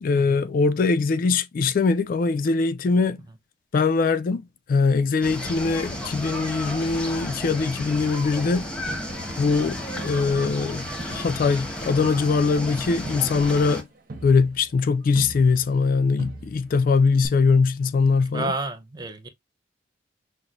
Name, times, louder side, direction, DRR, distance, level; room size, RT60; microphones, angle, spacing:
voice 1, 0.0-3.2 3.7-8.7 9.4-13.9 14.2-18.5, left 4 dB, 50° left, 0.3 m, -22 dB
sound 1, 5.2-13.8, left 1 dB, 5° left, 0.9 m, -33 dB
Crowd, 8.9-10.7 11.0-15.9 16.2-16.9 17.2-17.3, right 2 dB, 50° right, 0.8 m, -42 dB
voice 2, 18.3-19.3, right 2 dB, 25° right, 0.6 m, -31 dB
5.8 x 2.1 x 2.4 m
head